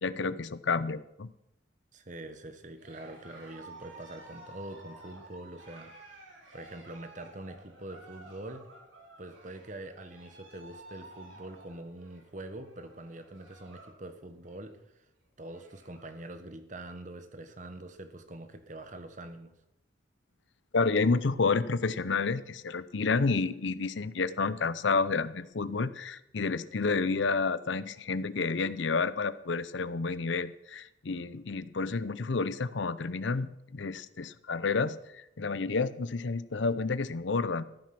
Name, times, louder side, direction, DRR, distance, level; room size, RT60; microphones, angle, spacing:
voice 1, 0.0-1.3 20.7-37.6, left 4 dB, 70° left, 15 dB, 0.6 m, -30 dB
voice 2, 1.9-6.2 6.5-8.7 9.2-14.8 15.4-19.5, right 1 dB, 40° right, 9 dB, 1.3 m, -44 dB
Cheering, 2.7-14.0 14.3-14.7 15.1-15.2 15.4-16.3, right 2 dB, 80° right, 3.9 m, -52 dB
15.0 x 9.5 x 6.0 m, 0.85 s
head